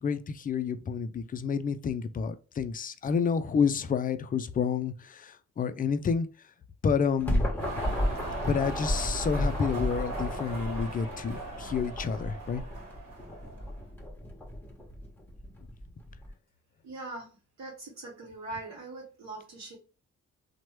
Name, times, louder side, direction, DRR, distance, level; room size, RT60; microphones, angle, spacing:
voice 1, 0.0-6.3 6.8-7.7 8.5-12.6, left 6 dB, 30° left, 0.4 m, -29 dB
sound 1, 7.2-16.3, equal, 5° left, 1.0 m, -34 dB
sound 2, 7.6-13.8, right 2 dB, 85° right, 0.9 m, -39 dB
voice 2, 16.8-17.3 17.6-19.8, right 2 dB, 60° right, 0.8 m, -41 dB
3.0 x 2.1 x 3.0 m
cardioid pair, 65°, 31 cm